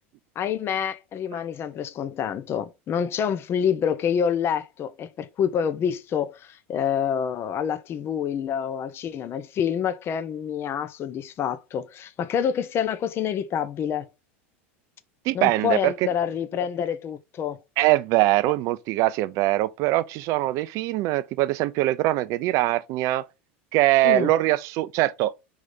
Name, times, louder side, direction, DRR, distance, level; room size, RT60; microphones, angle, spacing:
voice 1, 0.4-14.1 15.3-17.6 24.0-24.3, left 8 dB, 35° left, 0.8 m, -27 dB
voice 2, 15.3-15.9 17.8-23.2 23.7-25.3, right 16 dB, 55° right, 0.5 m, -22 dB
4.8 x 4.1 x 5.3 m
hypercardioid pair, 105°, 7 cm